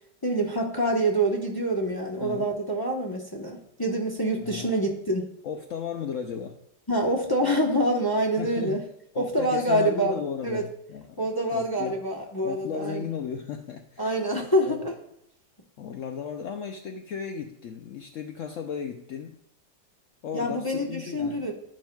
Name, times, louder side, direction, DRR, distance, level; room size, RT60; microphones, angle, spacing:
voice 1, 0.2-5.3 6.9-8.8 9.2-10.2 10.4-10.6 11.2-13.0 14.0-14.9 20.3-21.5, right 1 dB, 20° left, 0 dB, 0.7 m, -26 dB
voice 2, 2.2-2.5 4.4-4.7 5.4-6.6 8.4-8.8 9.1-11.2 11.5-12.0 12.4-14.8 15.8-19.4 20.2-21.5, left 7 dB, 75° left, 4 dB, 0.7 m, -35 dB
11.5 x 10.0 x 2.3 m, 0.78 s
omnidirectional pair, 2.0 m